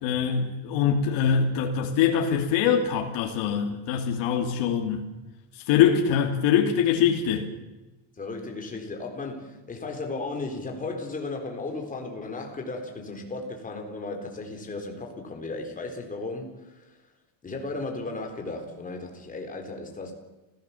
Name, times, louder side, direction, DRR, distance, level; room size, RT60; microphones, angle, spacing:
voice 1, 0.0-5.1 5.7-7.5, left 8 dB, 60° left, 3.0 m, -23 dB
voice 2, 8.2-17.0 17.4-20.1, left 3 dB, 15° left, 4.0 m, -35 dB
29.0 x 17.0 x 7.2 m
cardioid pair, 170°, 49 cm